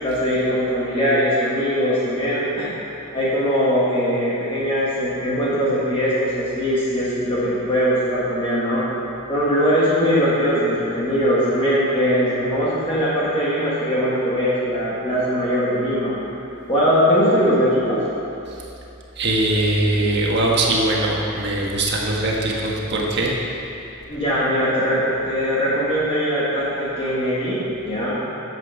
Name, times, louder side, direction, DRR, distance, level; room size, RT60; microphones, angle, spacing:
voice 1, 0.0-2.7 3.1-8.8 9.3-16.2 16.7-18.0 24.1-27.6 27.8-28.2, equal, 25° left, -9 dB, 1.7 m, -21 dB
voice 2, 19.2-23.3, right 1 dB, 50° right, -2 dB, 1.5 m, -21 dB
9.8 x 7.6 x 5.7 m, 2.8 s
head